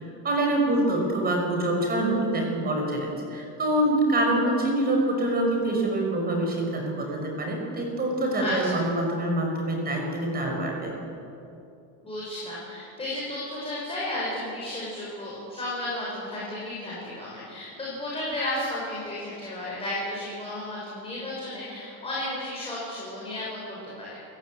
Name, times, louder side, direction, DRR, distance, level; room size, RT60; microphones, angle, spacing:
voice 1, 0.2-10.9, right 1 dB, 20° right, 1 dB, 5.9 m, -25 dB
voice 2, 8.4-8.8 12.0-24.2, left 1 dB, 15° left, -6 dB, 5.8 m, -33 dB
29.0 x 15.0 x 9.0 m, 2.7 s
cardioid pair, 170°, 41 cm